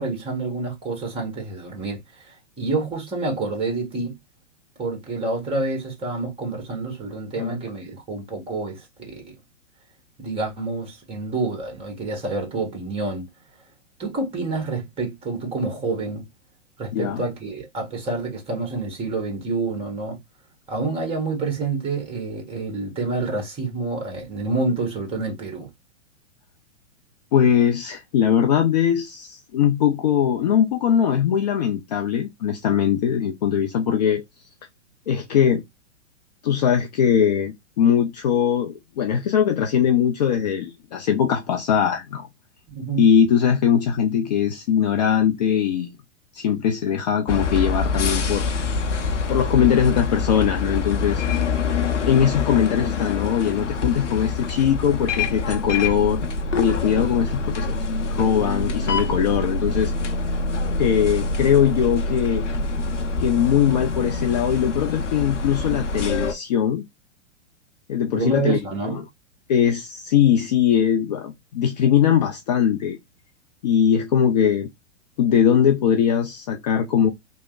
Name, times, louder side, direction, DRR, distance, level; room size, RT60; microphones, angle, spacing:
voice 1, 0.0-4.1 4.8-9.3 10.2-13.2 14.0-16.2 16.8-20.2 20.7-25.7 42.7-43.0 68.1-69.0, right 3 dB, 15° right, 1.4 m, -28 dB
voice 2, 16.9-17.2 27.3-34.2 35.1-35.6 36.4-42.3 43.0-45.9 46.3-48.4 49.3-51.2 52.1-56.2 56.5-59.9 60.8-62.5 63.2-66.8 67.9-68.6 68.9-69.0 69.5-73.0 73.6-74.7 75.2-77.1, left 8 dB, 35° left, 0.4 m, -20 dB
sound 1, 47.3-66.3, left 4 dB, 80° left, 0.7 m, -25 dB
3.1 x 2.1 x 2.3 m
figure-of-eight pair, 110°, 36 cm